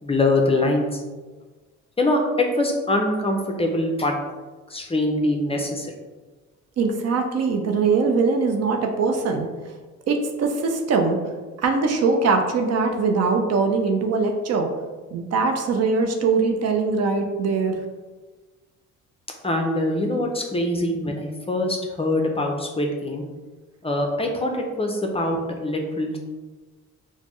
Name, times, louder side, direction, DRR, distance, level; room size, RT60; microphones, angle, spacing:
voice 1, 0.0-1.0 2.0-4.1 4.7-5.9 19.4-23.2 23.8-26.2, left 1 dB, 20° left, 2 dB, 0.4 m, -23 dB
voice 2, 6.8-9.8 10.1-11.3 11.6-14.7 15.1-17.8, right 4 dB, 55° right, 3 dB, 0.6 m, -22 dB
4.1 x 2.0 x 3.0 m, 1.3 s
cardioid pair, 90°, 30 cm